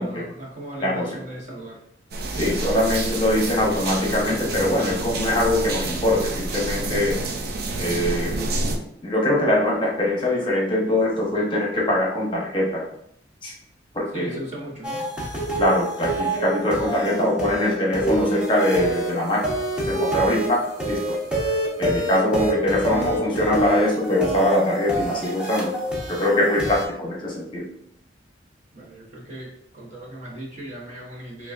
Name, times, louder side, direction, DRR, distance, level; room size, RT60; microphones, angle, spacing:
voice 1, 0.0-1.8 14.1-15.1 20.0-20.3 28.7-31.5, right 1 dB, 40° right, -4 dB, 1.0 m, -38 dB
sound 1, 2.1-8.8, right 2 dB, 60° right, 0.5 m, -28 dB
voice 2, 2.3-7.2 7.8-8.3 9.0-12.8 13.4-13.5 13.9-14.4 15.6-19.4 19.8-20.6 20.9-21.1 21.4-25.7 26.1-27.7, left 1 dB, 30° left, -3 dB, 1.0 m, -22 dB
sound 2, 14.8-26.8, right 1 dB, 5° right, 0.8 m, -27 dB
5.6 x 2.3 x 2.5 m, 0.73 s
head